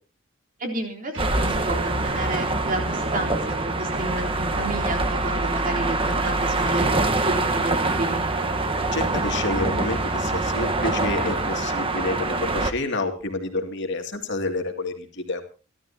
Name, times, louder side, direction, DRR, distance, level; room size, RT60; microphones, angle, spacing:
voice 1, 0.6-6.9 7.3-8.2, right 1 dB, 40° right, 1 dB, 3.6 m, -31 dB
sound 1, 1.1-11.5, right 1 dB, 65° right, 2.1 m, -34 dB
sound 2, 1.2-12.7, right 2 dB, 25° right, 1.2 m, -25 dB
voice 2, 8.9-15.4, left 2 dB, 60° left, 5 dB, 2.5 m, -29 dB
29.0 x 12.5 x 2.8 m, 0.34 s
head